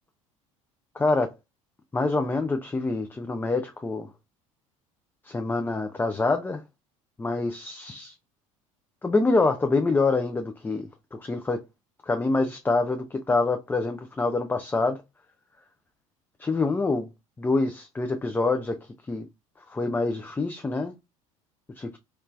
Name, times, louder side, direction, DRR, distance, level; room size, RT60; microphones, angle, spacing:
voice 1, 1.0-1.3 1.9-4.1 5.2-6.6 7.2-8.1 9.0-10.9 11.2-11.6 12.0-15.0 16.4-17.1 17.4-18.8 19.1-19.3 19.7-20.9 21.8-21.9, left 3 dB, 10° left, 0.4 m, -26 dB
3.2 x 3.0 x 2.5 m
figure-of-eight pair, 65°, 18 cm